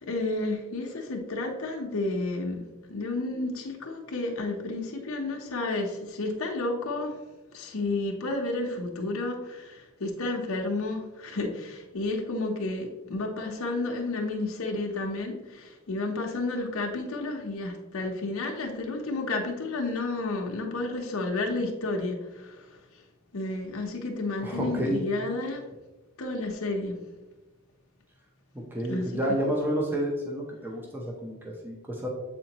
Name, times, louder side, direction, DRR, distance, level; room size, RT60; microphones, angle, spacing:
voice 1, 0.0-7.2 7.5-22.8 23.3-25.6 26.2-27.0 28.9-29.4, left 2 dB, 80° left, 1 dB, 0.9 m, -31 dB
voice 2, 24.4-25.0 28.7-32.1, right 1 dB, 10° right, -1 dB, 0.7 m, -30 dB
7.5 x 4.3 x 2.9 m, 1.1 s
head